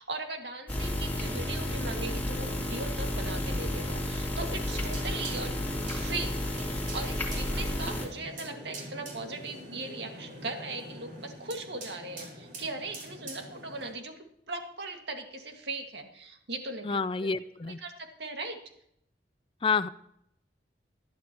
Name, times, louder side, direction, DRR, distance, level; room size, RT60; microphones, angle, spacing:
voice 1, 0.0-5.6 5.8-6.3 6.6-14.1 14.5-17.3 17.7-18.6, right 3 dB, 75° right, 3 dB, 2.0 m, -39 dB
sound 1, 0.7-8.1, left 1 dB, 10° left, 2.7 m, -32 dB
sound 2, 4.7-13.9, right 1 dB, 50° right, 5.5 m, -44 dB
voice 2, 16.8-17.8 19.6-19.9, left 5 dB, 30° left, 14 dB, 0.4 m, -28 dB
20.0 x 12.0 x 3.0 m, 0.74 s
head